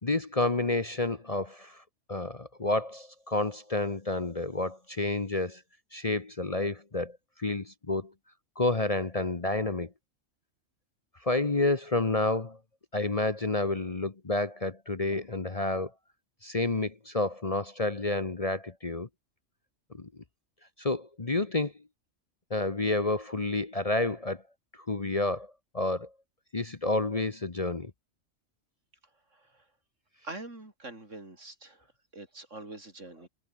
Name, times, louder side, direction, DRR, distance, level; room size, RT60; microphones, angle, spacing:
voice 1, 0.0-1.8 2.1-5.6 5.9-8.1 8.6-9.9 11.2-12.6 12.9-15.9 16.4-19.1 19.9-20.1 20.8-21.7 22.5-24.4 24.9-26.1 26.5-27.9, left 2 dB, 30° left, 1.2 m, -29 dB
voice 2, 29.3-29.7 30.2-33.3, right 2 dB, 70° right, 5.2 m, -45 dB
omnidirectional pair, 1.3 m